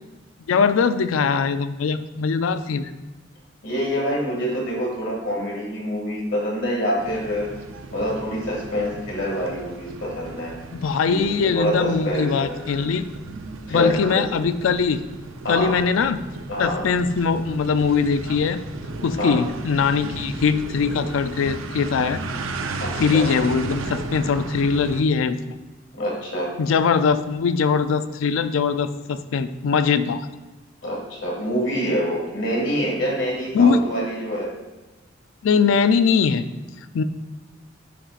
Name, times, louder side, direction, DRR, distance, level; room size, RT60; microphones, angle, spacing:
voice 1, 0.5-2.9 10.7-13.1 13.7-15.0 15.5-16.2 16.6-18.6 19.0-22.2 23.0-25.5 26.6-30.3 33.5-33.8 35.4-36.5 36.9-37.0, left 5 dB, 85° left, 12 dB, 0.4 m, -21 dB
voice 2, 3.6-7.5 7.9-10.5 11.1-12.9 13.7-14.2 15.4-15.8 16.5-16.8 19.2-19.4 22.8-23.3 25.9-26.5 30.8-34.5, equal, 65° left, -3 dB, 2.0 m, -26 dB
sound 1, 7.0-25.0, right 3 dB, 85° right, 0.5 m, -35 dB
9.9 x 3.9 x 2.4 m, 1.1 s
head